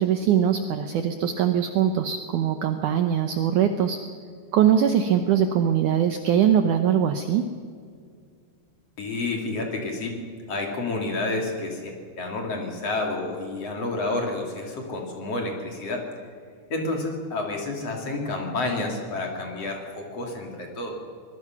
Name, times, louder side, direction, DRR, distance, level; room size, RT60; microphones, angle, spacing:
voice 1, 0.0-4.0 4.5-7.5, right 9 dB, 90° right, 7 dB, 1.7 m, -22 dB
voice 2, 9.0-10.2 10.5-16.0 16.7-20.9, left 2 dB, 40° left, 1 dB, 3.2 m, -29 dB
24.5 x 20.0 x 5.9 m, 2.1 s
omnidirectional pair, 4.8 m